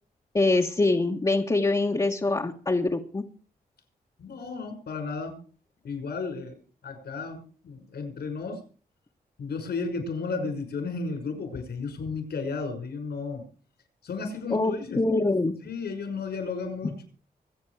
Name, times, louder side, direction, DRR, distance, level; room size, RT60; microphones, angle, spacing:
voice 1, 0.3-3.2 14.5-15.6, left 2 dB, 25° left, 0 dB, 1.5 m, -24 dB
voice 2, 4.2-5.4 5.8-8.6 9.4-13.4 14.0-15.0 15.6-17.0, left 4 dB, 80° left, 5 dB, 5.9 m, -33 dB
24.5 x 8.5 x 4.9 m, 0.41 s
cardioid pair, 90°, 17 cm